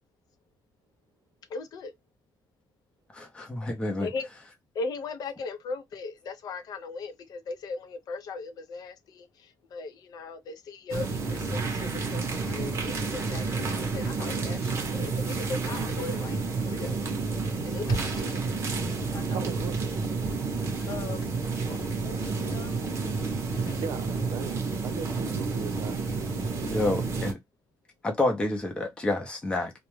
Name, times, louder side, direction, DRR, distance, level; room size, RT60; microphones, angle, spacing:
voice 1, 1.5-1.9 4.0-4.3 4.7-17.1 17.6-18.7 19.1-19.5 20.9-21.2 21.7-23.8, left 4 dB, 60° left, 0.5 m, -39 dB
voice 2, 3.1-4.1 26.6-27.4 28.0-29.7, left 2 dB, 15° left, 0.6 m, -29 dB
sound 1, 10.9-27.3, right 4 dB, 35° right, 0.7 m, -30 dB
voice 3, 19.3-19.9 23.8-26.1, right 6 dB, 80° right, 0.6 m, -38 dB
2.2 x 2.1 x 3.0 m
cardioid pair, 175°, 8 cm